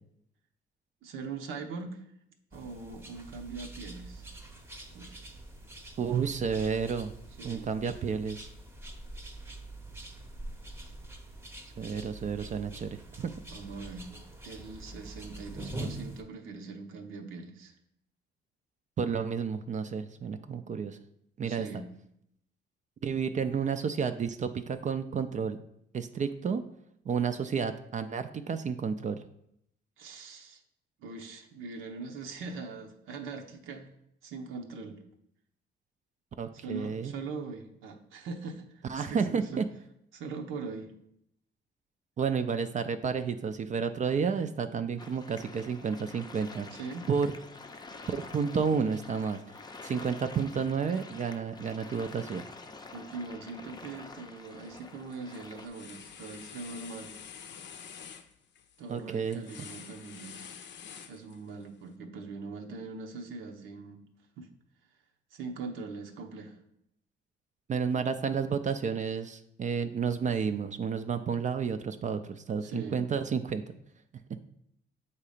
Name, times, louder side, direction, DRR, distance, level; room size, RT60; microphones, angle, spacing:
voice 1, 1.0-2.0 2.5-4.3 4.9-5.2 7.4-7.7 13.5-14.1 14.4-17.7 21.4-21.9 30.0-30.6 31.0-33.9 34.2-35.0 36.6-39.6 40.1-40.9 46.7-47.1 49.9-50.0 52.9-57.2 58.8-60.6 61.1-64.0 64.4-64.5 65.3-66.6 72.6-73.0, right 4 dB, 80° right, 3 dB, 0.8 m, -41 dB
sound 1, 2.5-16.2, right 2 dB, 10° right, 0.8 m, -45 dB
voice 2, 6.0-7.1 7.4-8.5 11.8-13.3 19.0-21.0 21.4-21.7 23.0-25.6 25.9-26.6 27.1-29.2 36.4-37.1 38.9-39.7 42.2-46.7 47.1-47.3 48.1-49.4 49.8-52.4 58.9-59.4 67.7-73.6, right 6 dB, 40° right, 9 dB, 0.4 m, -31 dB
sound 2, 45.0-55.7, left 3 dB, 20° left, 0.5 m, -47 dB
sound 3, 54.5-54.8 55.1-61.6, left 7 dB, 65° left, 0.6 m, -48 dB
7.2 x 2.8 x 4.9 m, 0.75 s
cardioid pair, 90°, 20 cm